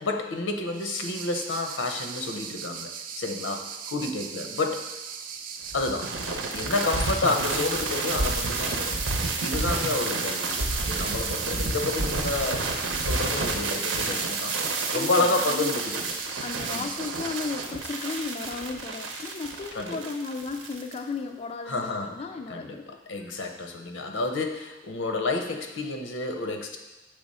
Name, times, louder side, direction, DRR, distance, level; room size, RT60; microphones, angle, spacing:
voice 1, 0.0-4.9 5.7-6.1 6.4-9.0 9.4-12.7 13.0-16.1 16.7-16.9 19.7-20.0 21.7-22.2 22.5-26.8, left 3 dB, 80° left, 4 dB, 0.8 m, -30 dB
sound 1, 0.7-17.6, right 7 dB, 45° right, 0.4 m, -39 dB
sound 2, 5.7-21.0, right 3 dB, 80° right, 0.8 m, -30 dB
voice 2, 14.9-15.7 16.4-22.9, left 4 dB, 35° left, 4 dB, 0.3 m, -35 dB
6.7 x 3.4 x 5.4 m, 1.2 s
head